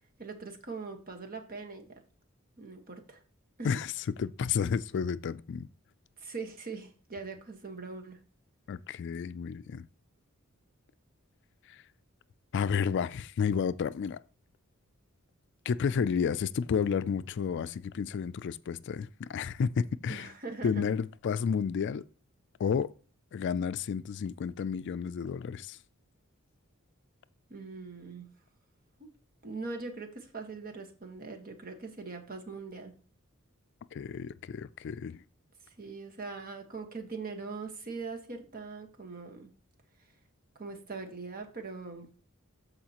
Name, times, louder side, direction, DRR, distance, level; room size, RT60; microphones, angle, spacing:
voice 1, 0.2-1.9 2.6-3.2 3.6-3.7 6.2-8.2 20.1-20.9 27.5-28.3 29.0-29.1 29.4-32.9 35.8-39.5 40.6-42.1, right 4 dB, 45° right, 1.4 m, -41 dB
voice 2, 3.6-5.7 8.7-9.9 11.7-11.8 12.5-14.2 15.7-20.3 20.6-22.0 22.6-22.9 23.3-25.8 33.9-35.2, left 6 dB, 55° left, 0.3 m, -31 dB
13.5 x 4.8 x 2.9 m
head